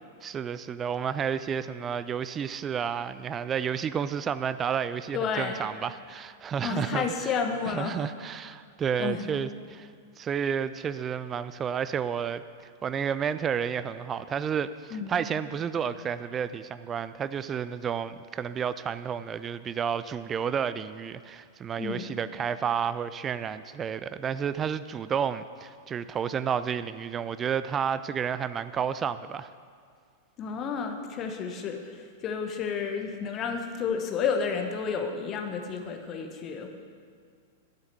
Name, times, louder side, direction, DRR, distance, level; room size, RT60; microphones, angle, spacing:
voice 1, 0.2-7.0 7.7-9.9 10.2-29.5, right 7 dB, 20° right, 14 dB, 0.3 m, -31 dB
voice 2, 5.1-5.6 6.6-8.0 9.0-9.3 14.9-15.3 21.8-22.1 30.4-36.7, left 6 dB, 30° left, 4 dB, 1.2 m, -31 dB
12.0 x 7.1 x 6.7 m, 2.1 s
figure-of-eight pair, 95°, 0 cm